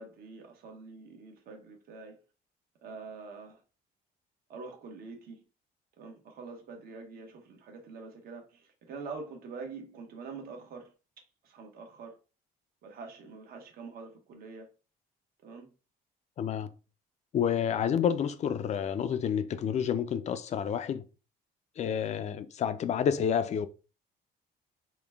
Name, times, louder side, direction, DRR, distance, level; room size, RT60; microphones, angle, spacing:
voice 1, 0.0-2.2 2.8-3.6 4.5-5.4 6.0-10.9 11.4-12.2 12.8-14.7 15.4-15.7, right 4 dB, 60° right, 1.1 m, -45 dB
voice 2, 16.4-16.7 17.3-21.0 21.8-23.7, left 8 dB, 45° left, 0.4 m, -29 dB
3.8 x 2.3 x 3.4 m
cardioid pair, 110°, 17 cm